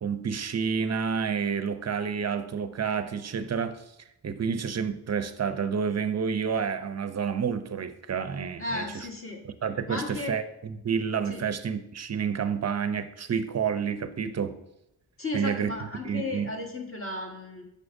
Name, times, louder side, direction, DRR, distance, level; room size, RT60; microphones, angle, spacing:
voice 1, 0.0-3.8 4.2-9.1 9.4-14.6 15.3-15.7 16.0-16.5, right 6 dB, 40° right, 0.5 m, -29 dB
voice 2, 8.6-9.4 9.9-10.4 11.3-11.4 15.2-17.6, left 2 dB, 30° left, 1.5 m, -34 dB
6.6 x 6.2 x 2.6 m
cardioid pair, 60°, 42 cm